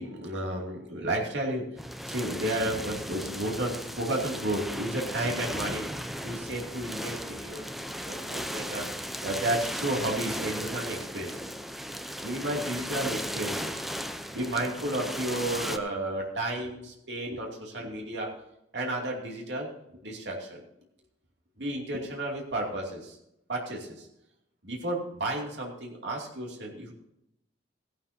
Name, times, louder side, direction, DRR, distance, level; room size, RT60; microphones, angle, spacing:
voice 1, 0.0-1.7 2.1-5.9 6.2-7.6 8.0-8.9 9.2-11.3 12.2-13.8 14.3-18.4 18.7-19.7 20.0-20.6 21.6-23.2 23.5-24.1 24.6-26.9, right 1 dB, 80° right, -1 dB, 2.7 m, -32 dB
sound 1, 1.8-15.8, equal, ahead, 0.6 m, -36 dB
16.5 x 11.5 x 2.8 m, 0.81 s
head